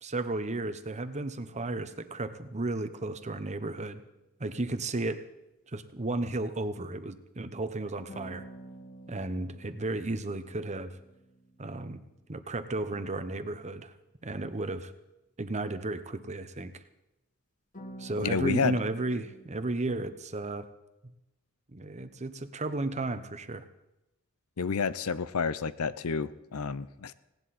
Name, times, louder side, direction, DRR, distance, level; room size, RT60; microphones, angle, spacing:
voice 1, 0.0-4.0 4.4-5.2 5.7-8.4 9.1-10.9 11.6-12.0 12.3-13.9 14.2-14.9 15.4-16.8 18.0-20.7 21.7-23.6, right 2 dB, 30° right, 10 dB, 1.0 m, -34 dB
sound 1, 3.0-3.7 8.1-12.9 17.7-19.7, right 1 dB, 40° left, 1.9 m, -50 dB
voice 2, 18.2-18.8 24.6-27.1, left 5 dB, 80° left, 15 dB, 0.7 m, -30 dB
18.5 x 17.5 x 4.3 m, 0.94 s
head